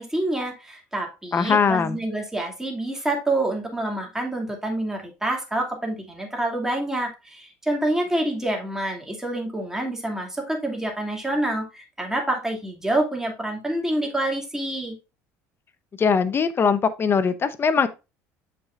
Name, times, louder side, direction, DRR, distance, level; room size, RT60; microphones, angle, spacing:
voice 1, 0.0-14.9, right 1 dB, 5° right, 2.4 m, -27 dB
voice 2, 1.3-2.0 16.0-17.9, left 6 dB, 30° left, 0.8 m, -21 dB
7.1 x 5.9 x 2.5 m
supercardioid pair, 95°, 7 cm